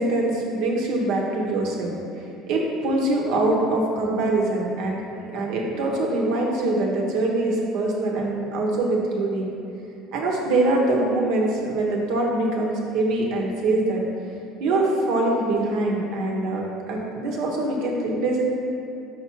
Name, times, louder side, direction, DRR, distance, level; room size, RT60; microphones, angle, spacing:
voice 1, 0.0-1.9 2.5-5.0 5.2-9.5 10.1-14.0 14.6-18.4, right 2 dB, 70° right, -1 dB, 1.2 m, -23 dB
5.9 x 5.2 x 4.6 m, 2.7 s
supercardioid pair, 85°, 0 cm